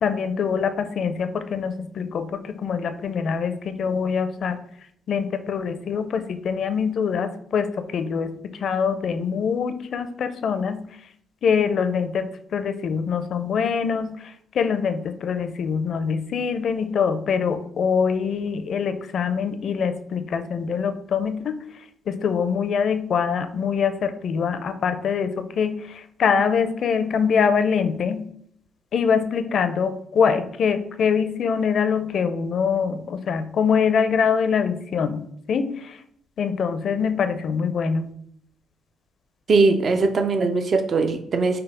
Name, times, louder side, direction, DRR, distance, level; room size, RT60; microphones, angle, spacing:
voice 1, 0.0-4.6 5.1-10.8 11.4-28.3 28.9-36.0 36.4-38.1, left 6 dB, 65° left, 10 dB, 0.4 m, -24 dB
voice 2, 39.5-41.6, right 3 dB, 50° right, 6 dB, 0.5 m, -20 dB
5.2 x 2.0 x 4.2 m, 0.67 s
supercardioid pair, 55°, 0 cm